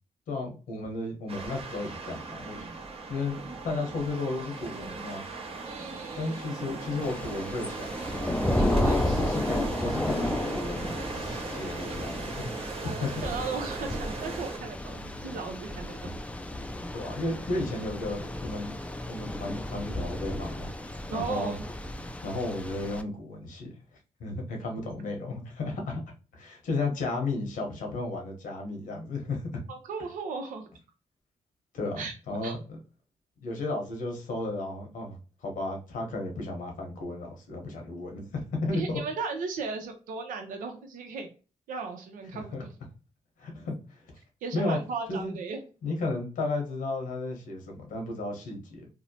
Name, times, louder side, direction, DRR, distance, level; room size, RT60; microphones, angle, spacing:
voice 1, 0.3-2.7 3.1-5.2 6.2-12.5 12.8-13.3 16.9-18.7 19.1-20.7 21.1-21.6 22.2-23.7 24.2-26.0 26.3-29.5 31.7-32.8 33.4-39.0 42.3-42.6 43.4-44.0 44.5-44.8 45.1-45.4 45.8-48.9, left 2 dB, 90° left, 1.0 m, -34 dB
sound 1, 1.3-14.6, right 4 dB, 45° right, 0.7 m, -39 dB
voice 2, 5.6-6.5 8.5-9.5 12.8-16.1 21.1-21.6 29.7-30.6 32.0-32.1 32.4-32.5 38.7-41.3 41.7-42.6 44.4-45.6, right 4 dB, 85° right, 0.6 m, -36 dB
Thunder / Rain, 7.0-23.0, left 1 dB, 10° left, 0.4 m, -33 dB
2.7 x 2.1 x 2.7 m
cardioid pair, 65°, 13 cm